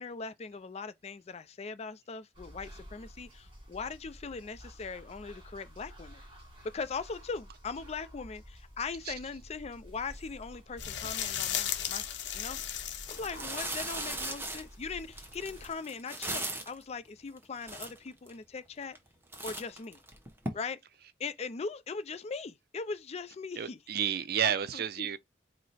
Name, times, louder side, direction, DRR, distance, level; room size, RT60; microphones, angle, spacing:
voice 1, 0.0-6.2 6.6-12.6 13.1-19.0 19.4-20.0 20.5-20.8 21.2-23.8 24.4-25.1, left 4 dB, 35° left, 0.4 m, -40 dB
sound 1, 2.3-15.7, equal, 30° right, 1.6 m, -51 dB
sound 2, 10.8-13.5 15.7-15.8, left 10 dB, 80° left, 0.7 m, -35 dB
sound 3, 12.5-12.6 13.1-16.8 17.4-17.5 17.6-18.3 18.8-19.1 19.3-20.5, right 1 dB, 15° right, 0.9 m, -38 dB
voice 2, 23.6-25.2, right 8 dB, 60° right, 0.5 m, -31 dB
4.7 x 2.0 x 4.1 m
head